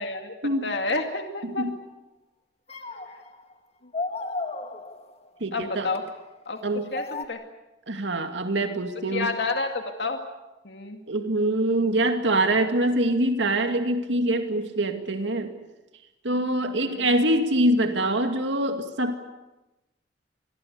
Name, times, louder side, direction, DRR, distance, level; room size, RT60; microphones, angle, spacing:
voice 1, 0.0-1.7 3.8-3.9 5.5-6.0 6.5-6.6 6.9-7.4 9.1-10.2 10.6-11.0 16.8-17.1, left 3 dB, 65° left, 5 dB, 2.2 m, -30 dB
sound 1, 1.4-1.7 2.7-3.5 3.9-5.3 6.0-6.1 7.0-7.3, left 3 dB, 35° left, 1.9 m, -34 dB
voice 2, 5.4-5.9 6.6-6.8 7.9-9.3 11.1-15.5 16.2-19.2, right 1 dB, 80° right, 6 dB, 2.3 m, -24 dB
27.0 x 21.5 x 8.3 m, 1.0 s
head